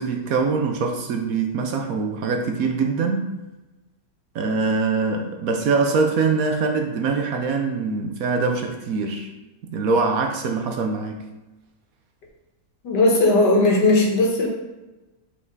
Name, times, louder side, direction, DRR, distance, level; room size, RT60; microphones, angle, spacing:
voice 1, 0.0-3.3 4.3-9.3 9.6-11.3, right 4 dB, 65° right, 4 dB, 1.0 m, -23 dB
voice 2, 12.8-14.5, left 2 dB, 85° left, -1 dB, 2.0 m, -17 dB
5.4 x 5.2 x 3.9 m, 1.1 s
omnidirectional pair, 1.8 m